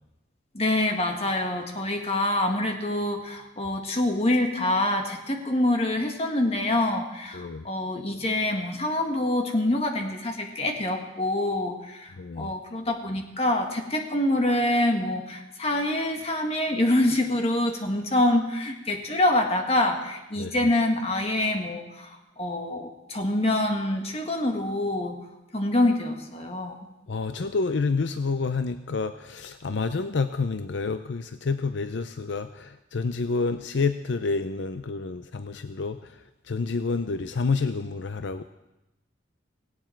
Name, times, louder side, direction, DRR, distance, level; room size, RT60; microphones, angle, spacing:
voice 1, 0.5-25.1 25.5-26.8, left 1 dB, 30° left, 4 dB, 1.7 m, -26 dB
voice 2, 7.3-7.7 12.2-12.5 20.4-20.5 27.1-36.2 36.4-38.4, left 4 dB, 65° left, 10 dB, 0.5 m, -28 dB
17.5 x 17.0 x 4.5 m, 0.97 s
head